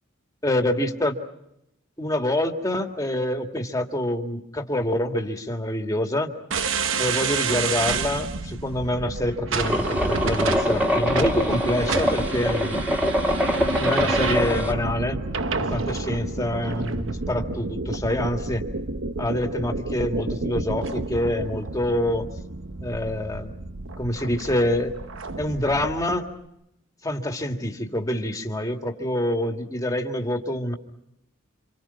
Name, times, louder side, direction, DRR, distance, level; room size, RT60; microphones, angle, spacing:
voice 1, 0.4-1.2 2.0-6.3 7.0-12.8 13.8-15.2 15.6-18.7 19.2-22.3 22.8-23.6 24.0-24.9 25.4-26.3 27.0-30.7, left 1 dB, 15° left, 3 dB, 2.0 m, -26 dB
sound 1, 6.5-26.2, right 4 dB, 75° right, 1.1 m, -29 dB
sound 2, 9.6-14.7, equal, 10° right, 2.3 m, -24 dB
28.0 x 27.0 x 5.7 m, 0.82 s
head